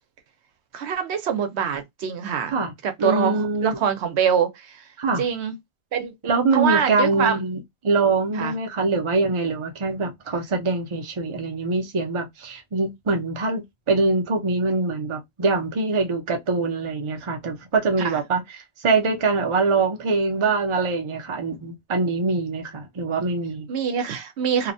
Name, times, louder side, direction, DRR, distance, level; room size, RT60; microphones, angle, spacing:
voice 1, 0.7-2.6 2.8-4.8 5.2-5.6 5.9-6.1 6.5-7.4 8.3-8.5 18.0-18.2 23.7-24.7, right 7 dB, 75° right, 0.9 m, -24 dB
voice 2, 3.0-3.8 5.0-5.2 6.2-18.4 18.8-23.7, right 3 dB, 35° right, 0.6 m, -23 dB
2.8 x 2.1 x 2.6 m
omnidirectional pair, 1.1 m